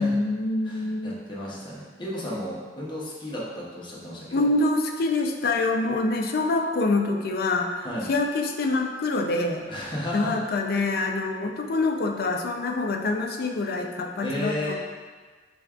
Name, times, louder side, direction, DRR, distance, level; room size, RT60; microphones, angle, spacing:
voice 1, 0.0-1.2 4.3-9.7 10.1-14.7, left 2 dB, 60° left, 3 dB, 0.4 m, -25 dB
voice 2, 0.6-4.5 7.8-8.1 9.7-10.4 14.2-14.7, left 1 dB, 25° left, -5 dB, 0.9 m, -33 dB
5.2 x 3.4 x 2.4 m, 1.5 s
head